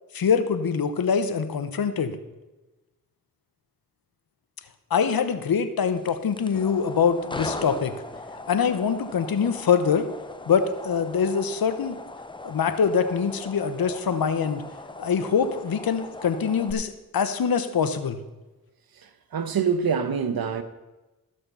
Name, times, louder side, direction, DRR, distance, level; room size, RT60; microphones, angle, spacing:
voice 1, 0.1-2.2 4.9-7.9 8.5-10.1 10.5-12.0 12.4-14.6 15.0-18.2, left 6 dB, 75° left, 1.0 m, -24 dB
sound 1, 6.0-16.7, left 2 dB, 15° left, 0.8 m, -39 dB
voice 2, 19.3-20.6, right 6 dB, 80° right, 1.1 m, -25 dB
14.0 x 6.6 x 5.6 m
cardioid pair, 65°, 36 cm